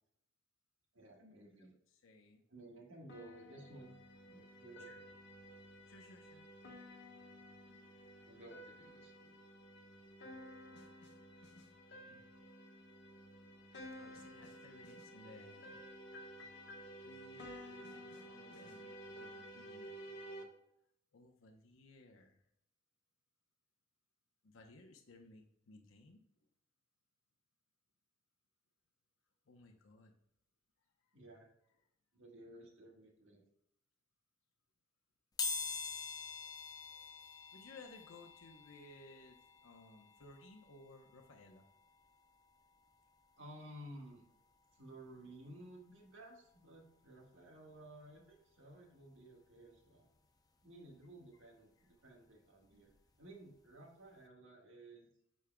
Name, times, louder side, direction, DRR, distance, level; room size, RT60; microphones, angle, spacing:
voice 1, 0.9-1.8 2.5-3.9 4.3-5.1 7.7-7.8 8.2-9.3 10.7-10.8 31.1-31.5 32.1-33.4 43.4-44.2 44.7-50.1 50.6-52.9 53.2-55.1, right 1 dB, 70° right, 0 dB, 1.6 m, -55 dB
voice 2, 1.6-2.4 4.8-5.0 5.9-6.5 12.1-12.2 14.0-15.9 17.0-18.9 19.2-20.1 21.1-22.4 24.4-26.2 29.5-30.1 37.5-41.6, left 2 dB, 85° left, 2 dB, 0.9 m, -59 dB
sound 1, 3.1-20.4, equal, 60° left, 1.3 m, -53 dB
sound 2, 35.4-46.1 46.5-46.6 47.8-47.9 48.2-50.2 50.6-53.2 53.6-53.8 54.1-54.2, left 4 dB, 20° left, 0.5 m, -47 dB
8.5 x 6.4 x 2.3 m, 0.74 s
head